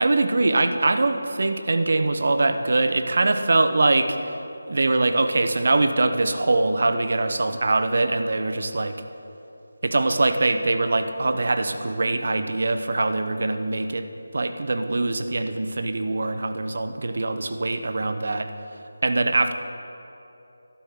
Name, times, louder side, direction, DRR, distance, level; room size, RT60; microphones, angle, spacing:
voice 1, 0.0-4.4 4.7-8.9 9.8-14.1 14.3-18.5 19.0-19.5, right 2 dB, 60° right, 8 dB, 0.8 m, -23 dB
13.5 x 11.5 x 3.8 m, 2.9 s
figure-of-eight pair, 165°, 0 cm